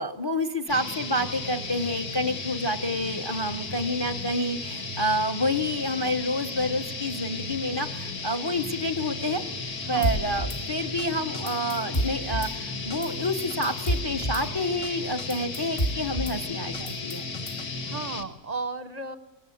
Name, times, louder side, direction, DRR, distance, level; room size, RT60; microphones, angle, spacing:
voice 1, 0.0-9.4 9.9-17.2, left 1 dB, 20° left, 11 dB, 0.8 m, -28 dB
sound 1, 0.7-18.2, left 3 dB, 75° left, 2.4 m, -35 dB
voice 2, 9.8-10.2 17.8-19.2, right 3 dB, 35° right, 12 dB, 0.7 m, -34 dB
Drum kit / Snare drum, 10.0-10.6 11.0-11.1 11.3-12.5 12.9-13.1 13.4-14.4 14.8-14.9 15.2-16.4 16.7-17.7, right 1 dB, 40° left, 1.8 m, -30 dB
25.0 x 21.0 x 8.5 m, 1.2 s
omnidirectional pair, 1.6 m